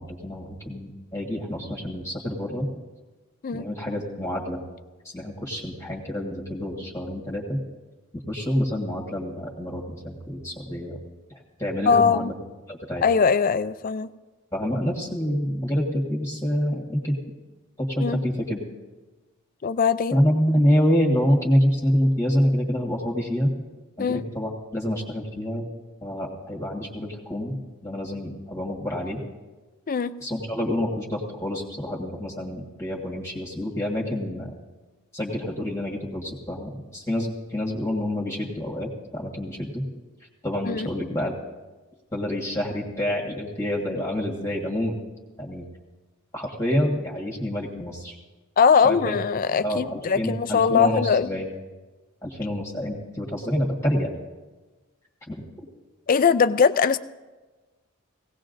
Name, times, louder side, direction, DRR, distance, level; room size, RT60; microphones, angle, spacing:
voice 1, 0.0-2.7 3.5-4.6 5.1-7.6 8.3-11.0 11.6-12.3 12.7-13.0 14.5-17.1 17.9-18.6 20.1-23.5 24.0-25.7 26.0-27.5 27.8-29.2 30.2-34.5 35.1-39.8 40.4-41.3 42.1-44.9 45.4-45.6 46.3-48.1 48.8-49.2 49.6-51.5 52.2-54.1 55.3-55.4, equal, 15° left, -2 dB, 1.6 m, -27 dB
voice 2, 11.9-12.3 13.0-14.1 18.0-18.2 19.6-20.2 24.0-24.2 29.9-30.1 40.6-40.9 48.6-51.3 56.1-57.0, left 6 dB, 40° left, 14 dB, 0.4 m, -21 dB
19.0 x 17.0 x 2.6 m, 1.2 s
head